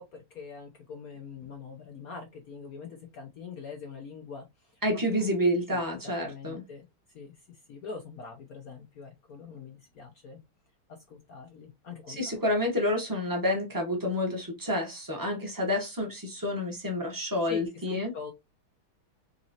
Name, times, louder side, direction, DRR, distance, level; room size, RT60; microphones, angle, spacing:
voice 1, 0.0-4.8 5.2-5.3 5.7-6.9 7.1-10.4 11.1-12.4 17.4-18.3, left 5 dB, 75° left, 0.8 m, -44 dB
voice 2, 4.8-6.6 12.1-18.1, left 1 dB, 20° right, 0.6 m, -29 dB
3.9 x 3.0 x 2.7 m
omnidirectional pair, 2.3 m